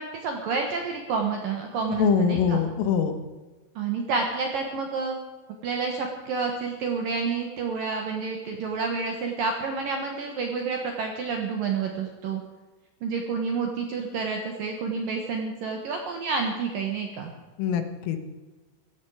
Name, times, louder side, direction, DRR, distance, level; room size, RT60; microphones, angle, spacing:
voice 1, 0.0-2.6 3.8-5.2 5.6-12.4 13.0-17.3, right 5 dB, 65° right, 3 dB, 2.2 m, -29 dB
voice 2, 1.9-3.2 17.6-18.2, left 7 dB, 80° left, 8 dB, 3.9 m, -23 dB
16.5 x 15.0 x 4.9 m, 1.3 s
omnidirectional pair, 6.0 m